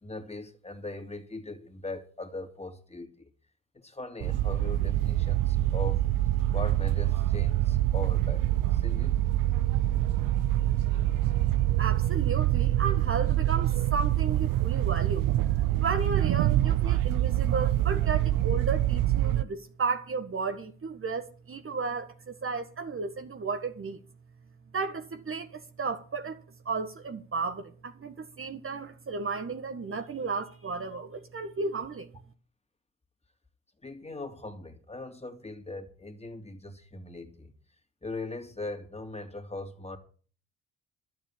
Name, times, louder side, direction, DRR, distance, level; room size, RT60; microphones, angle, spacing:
voice 1, 0.0-3.3 3.7-6.1 6.5-9.1 33.8-37.5 38.0-40.0, left 2 dB, 15° left, 3.1 m, -40 dB
sound 1, 4.2-19.4, right 14 dB, 60° right, 0.6 m, -25 dB
voice 2, 11.8-15.3 15.8-24.0 24.7-32.1, right 4 dB, 35° right, 1.6 m, -34 dB
12.0 x 7.8 x 8.8 m
hypercardioid pair, 55°, 38 cm